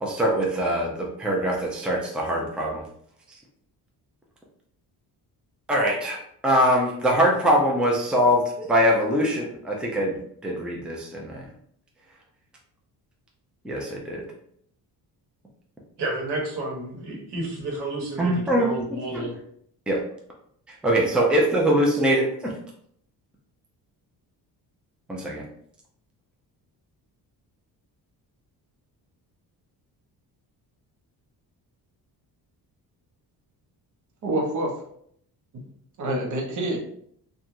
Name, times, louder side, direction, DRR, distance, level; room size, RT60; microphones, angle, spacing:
voice 1, 0.0-2.8 5.7-11.5 13.6-14.3 18.2-18.7 19.1-19.3 19.9-20.0 20.7-22.5 25.1-25.4, equal, ahead, -2 dB, 0.5 m, -23 dB
voice 2, 16.0-19.3, right 2 dB, 75° right, -1 dB, 1.1 m, -31 dB
voice 3, 34.2-34.7 36.0-36.8, right 1 dB, 45° right, 0 dB, 0.8 m, -26 dB
2.9 x 2.3 x 2.5 m, 0.66 s
cardioid pair, 110°, 40 cm